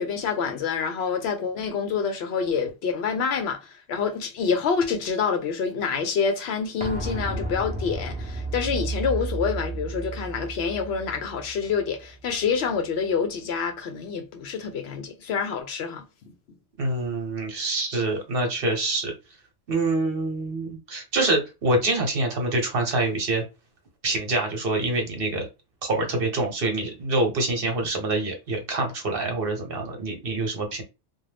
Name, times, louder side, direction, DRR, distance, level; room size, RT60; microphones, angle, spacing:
voice 1, 0.0-16.0, left 6 dB, 65° left, 0.8 m, -27 dB
sound 1, 6.8-12.4 12.7-12.8, right 2 dB, 10° right, 0.6 m, -33 dB
voice 2, 16.8-19.1 19.7-23.4 24.0-25.5 25.8-30.8, right 2 dB, 55° right, 1.0 m, -26 dB
2.4 x 2.3 x 3.3 m
omnidirectional pair, 1.2 m